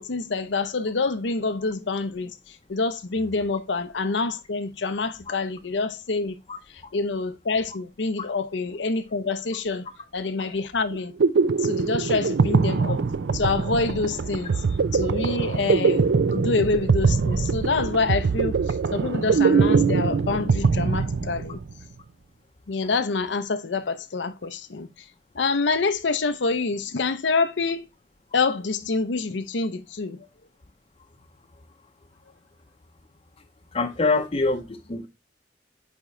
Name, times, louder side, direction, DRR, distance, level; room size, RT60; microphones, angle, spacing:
voice 1, 0.0-6.4 6.9-9.9 10.1-11.1 11.6-13.1 13.3-14.6 14.9-21.6 22.7-25.1 25.3-27.9 28.3-30.3, left 3 dB, 90° left, 0.7 m, -27 dB
sound 1, 10.9-21.7, right 5 dB, 80° right, 0.5 m, -22 dB
voice 2, 33.7-35.1, left 3 dB, 35° left, 0.6 m, -24 dB
8.6 x 3.7 x 3.1 m
head